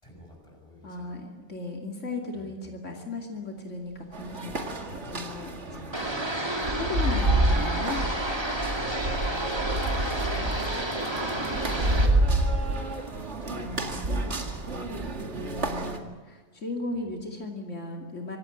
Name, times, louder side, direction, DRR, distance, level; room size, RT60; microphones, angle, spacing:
voice 1, 0.0-1.2 2.3-2.6 5.6-5.9 6.6-6.8 8.8-9.5 9.8-11.0 11.3-15.5, equal, 25° left, 1 dB, 6.5 m, -49 dB
voice 2, 0.8-4.8 5.1-5.8 6.7-8.1 13.5-14.3 15.4-16.0 16.3-18.4, left 2 dB, 85° left, 1 dB, 2.9 m, -36 dB
sound 1, 3.4-15.5, right 3 dB, 55° right, 1.6 m, -45 dB
sound 2, 4.1-16.0, right 2 dB, 70° right, 2.3 m, -29 dB
sound 3, 5.9-12.1, right 1 dB, 20° right, 2.6 m, -30 dB
24.5 x 17.0 x 9.3 m, 1.3 s
omnidirectional pair, 1.2 m